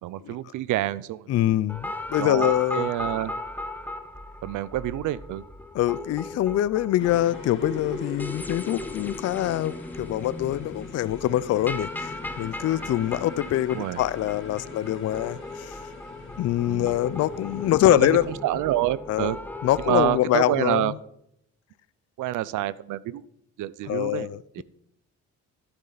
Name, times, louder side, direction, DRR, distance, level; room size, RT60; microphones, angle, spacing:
voice 1, 0.0-1.3 2.2-3.3 4.4-5.4 13.7-14.0 16.7-16.9 17.9-18.2 18.4-19.4 19.9-20.9 22.2-23.2 23.6-24.3 24.6-24.7, right 14 dB, 80° right, 0.6 m, -27 dB
voice 2, 1.3-2.9 5.7-15.8 16.4-18.3 19.1-19.3 19.6-21.0 23.8-24.6, left 13 dB, 55° left, 0.4 m, -24 dB
sound 1, 1.7-20.2, left 2 dB, 5° left, 0.9 m, -37 dB
sound 2, 7.0-18.3, left 3 dB, 40° left, 4.0 m, -42 dB
11.5 x 11.0 x 4.0 m
cardioid pair, 90°, 30 cm